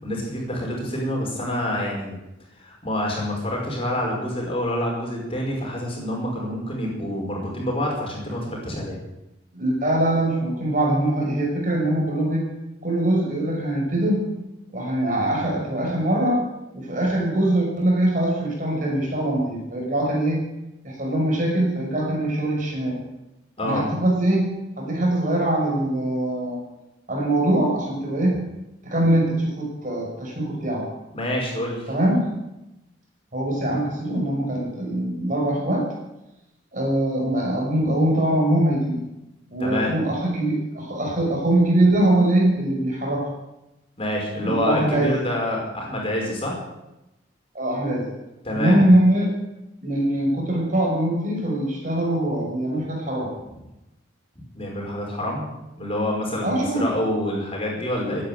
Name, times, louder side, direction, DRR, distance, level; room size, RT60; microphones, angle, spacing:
voice 1, 0.0-2.2 2.6-9.0 23.6-23.8 31.1-31.9 39.6-39.9 44.0-46.6 48.4-48.8 54.5-55.5 55.8-58.2, left 1 dB, 30° left, -2 dB, 5.3 m, -27 dB
voice 2, 9.5-12.5 12.8-14.2 14.7-16.4 16.7-20.4 20.8-23.0 23.6-26.6 27.1-28.5 28.8-30.9 31.9-32.3 33.3-35.9 36.7-39.0 39.5-43.3 44.4-45.1 47.5-48.1 48.5-49.3 49.8-53.3 56.4-56.9, right 1 dB, 45° right, -1 dB, 5.9 m, -22 dB
15.5 x 10.0 x 9.2 m, 0.93 s
head